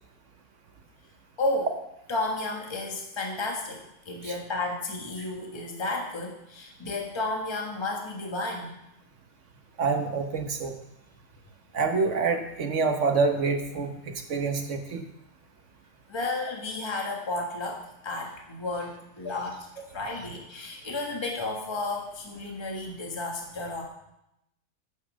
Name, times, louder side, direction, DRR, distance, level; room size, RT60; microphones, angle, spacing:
voice 1, 1.4-1.7 2.1-8.8 16.1-19.7 19.9-23.8, left 2 dB, 15° left, 0 dB, 1.4 m, -32 dB
voice 2, 9.8-10.7 11.7-13.9 14.3-15.0, right 4 dB, 50° right, 5 dB, 1.2 m, -26 dB
9.5 x 5.6 x 6.2 m, 0.84 s
omnidirectional pair, 1.8 m